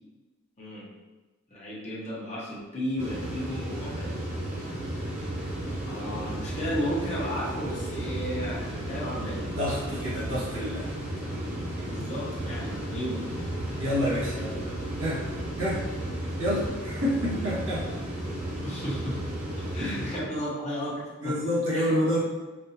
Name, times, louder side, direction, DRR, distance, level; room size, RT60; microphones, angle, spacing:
voice 1, 0.6-0.9 1.5-4.3 5.8-9.5 11.8-13.3 14.3-14.9 17.3-17.4 18.6-19.2 19.7-21.4 21.7-21.9, equal, 30° left, -6 dB, 0.9 m, -34 dB
sound 1, 3.0-20.2, right 1 dB, 35° right, 0.9 m, -34 dB
sound 2, 5.2-16.7, right 3 dB, 75° left, 1.0 m, -45 dB
voice 2, 9.5-11.0 13.8-14.4 15.0-15.3 15.6-15.8 16.4-17.9 19.8-19.9 21.2-22.2, equal, 80° right, -7 dB, 1.5 m, -28 dB
5.0 x 2.6 x 2.8 m, 1.2 s
head